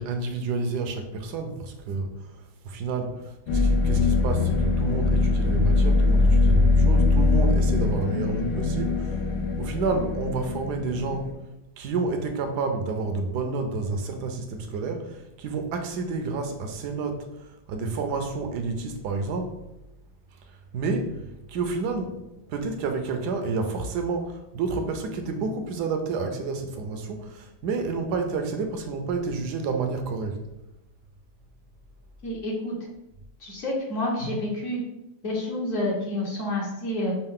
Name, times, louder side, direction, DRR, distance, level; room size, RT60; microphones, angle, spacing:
voice 1, 0.0-9.2 9.6-11.3 11.8-19.6 20.5-21.2 21.5-22.2 22.5-30.4, right 4 dB, 75° right, 5 dB, 1.1 m, -30 dB
sound 1, 3.5-11.3, left 3 dB, 75° left, 1.3 m, -22 dB
voice 2, 32.2-32.7 33.4-34.8 35.2-37.1, left 1 dB, 50° left, -2 dB, 1.2 m, -28 dB
5.5 x 2.4 x 3.6 m, 0.93 s
omnidirectional pair, 1.9 m